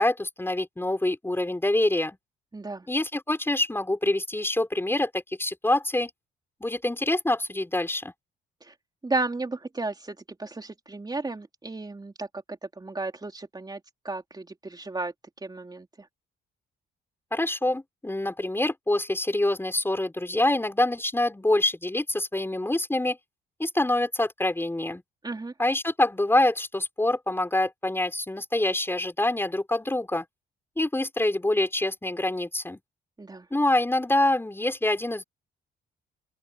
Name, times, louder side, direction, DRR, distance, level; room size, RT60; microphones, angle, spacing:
voice 1, 0.0-2.2 2.9-6.1 6.6-8.1 17.3-23.2 23.6-25.0 25.6-30.2 30.8-32.8 33.5-35.2, left 1 dB, 10° left, 4.8 m, -25 dB
voice 2, 2.5-2.9 8.6-8.7 9.0-15.1 15.4-15.9 25.2-25.5 33.2-33.5, right 3 dB, 20° right, 3.5 m, -34 dB
open air
cardioid pair, 90°, 20 cm